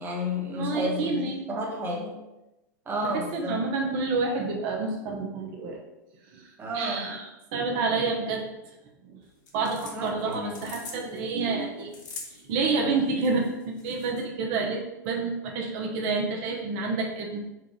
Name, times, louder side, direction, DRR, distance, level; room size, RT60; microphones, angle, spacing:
voice 1, 0.0-2.2 2.9-3.6 6.6-7.2 9.9-10.7 11.0-11.1, left 1 dB, 20° right, -2 dB, 1.2 m, -32 dB
voice 2, 0.6-1.4 3.0-5.8 6.3-6.4 6.7-7.2 7.5-8.4 9.5-11.9 12.3-17.5, right 3 dB, 55° right, 1 dB, 0.9 m, -28 dB
sound 1, 9.2-14.3, left 4 dB, 75° left, 1.1 m, -45 dB
4.5 x 2.5 x 4.7 m, 0.96 s
hypercardioid pair, 110°, 10 cm